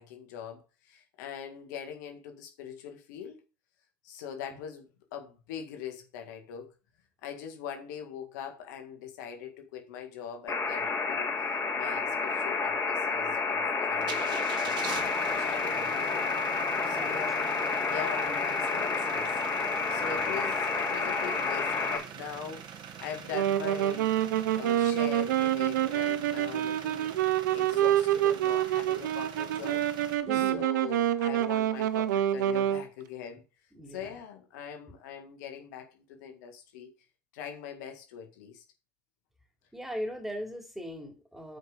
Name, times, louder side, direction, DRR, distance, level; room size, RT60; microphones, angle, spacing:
voice 1, 0.0-3.4 4.0-6.7 7.2-11.4 11.7-15.0 15.4-16.3 16.8-17.4 17.8-22.6 23.0-24.1 24.5-27.1 27.5-29.8 30.3-33.4 33.9-36.9 37.3-38.6, left 8 dB, 75° left, 1.9 m, -42 dB
sound 1, 10.5-22.0, left 4 dB, 30° left, 3.3 m, -30 dB
sound 2, 14.0-30.2, right 8 dB, 50° right, 1.7 m, -44 dB
voice 2, 16.8-17.2 18.1-18.4 20.0-20.4 30.2-30.7 33.7-34.2 39.7-41.6, equal, 5° right, 3.5 m, -40 dB
Wind instrument woodwind instrument, 23.3-32.8, right 12 dB, 85° right, 0.8 m, -27 dB
8.8 x 5.2 x 5.1 m
hypercardioid pair, 85°, 10 cm